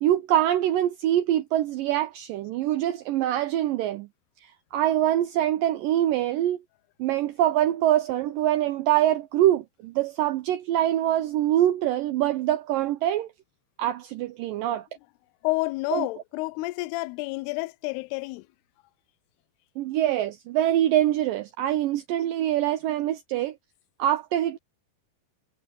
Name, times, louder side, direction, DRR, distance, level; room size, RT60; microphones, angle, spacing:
voice 1, 0.0-4.1 4.7-6.6 7.0-13.3 13.8-14.9 15.9-16.1 19.8-23.6 24.0-24.6, right 12 dB, 80° right, 2.1 m, -24 dB
voice 2, 15.4-18.5, left 22 dB, 85° left, 2.6 m, -29 dB
omnidirectional pair, 4.6 m